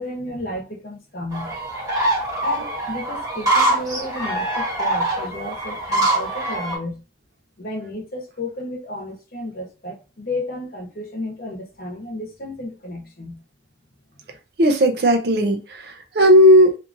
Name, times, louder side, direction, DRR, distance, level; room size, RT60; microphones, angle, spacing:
voice 1, 0.0-1.6 2.4-7.0 7.6-13.4, left 1 dB, 55° left, 0.9 m, -32 dB
sound 1, 1.3-6.8, right 1 dB, 20° right, 1.1 m, -23 dB
voice 2, 14.6-16.8, equal, 65° right, 0.5 m, -15 dB
2.7 x 2.4 x 2.6 m
head